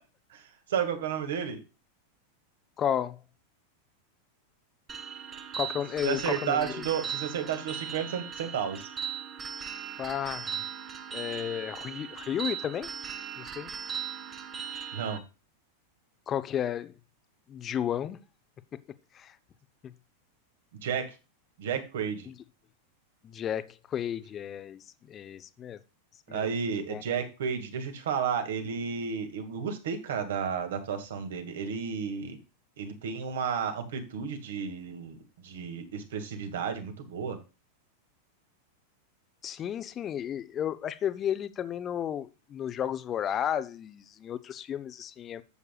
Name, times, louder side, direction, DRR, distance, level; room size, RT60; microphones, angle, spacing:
voice 1, 0.7-1.6 6.0-8.9 14.9-15.2 20.8-21.1 21.6-22.3 26.3-32.4 32.8-35.2 35.4-37.4, right 7 dB, 60° right, 2.1 m, -32 dB
voice 2, 2.8-3.2 5.5-6.9 10.0-10.5 11.1-12.9 13.4-13.7 16.3-17.0 17.5-18.2 18.7-18.8 19.1-19.4 19.8-19.9 22.3-22.4 23.2-25.8 26.3-26.5 26.9-27.0 39.4-45.4, left 9 dB, 25° left, 0.8 m, -33 dB
sound 1, 4.9-15.2, right 8 dB, 25° right, 1.3 m, -38 dB
12.5 x 8.2 x 2.4 m
figure-of-eight pair, 90°, 0 cm